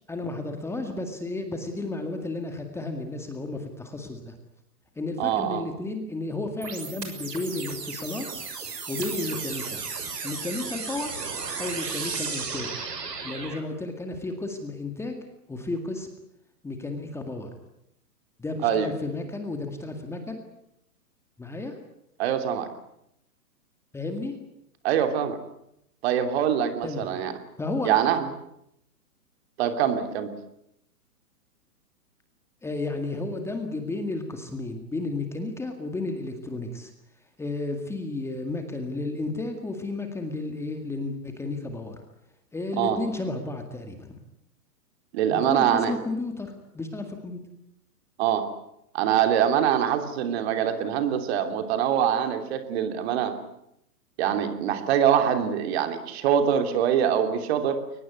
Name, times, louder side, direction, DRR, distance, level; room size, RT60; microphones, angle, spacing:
voice 1, 0.1-4.3 5.0-8.2 8.9-9.8 10.2-11.1 11.6-12.7 13.2-15.2 15.5-16.1 16.6-17.5 18.4-20.4 21.4-21.7 23.9-24.4 26.8-27.1 27.6-28.1 32.6-36.9 37.4-42.0 42.5-44.2 45.3-47.4, left 2 dB, 5° left, 5 dB, 2.0 m, -32 dB
voice 2, 5.2-5.6 18.6-18.8 22.2-22.7 24.8-25.4 26.0-27.3 27.8-28.3 29.6-30.3 42.8-43.0 45.1-45.9 48.2-48.5 48.9-53.4 54.2-57.8, right 9 dB, 40° right, 8 dB, 3.1 m, -24 dB
sound 1, 6.6-13.6, right 5 dB, 90° right, 6.5 m, -34 dB
23.0 x 20.0 x 9.5 m, 0.79 s
hypercardioid pair, 145°, 47 cm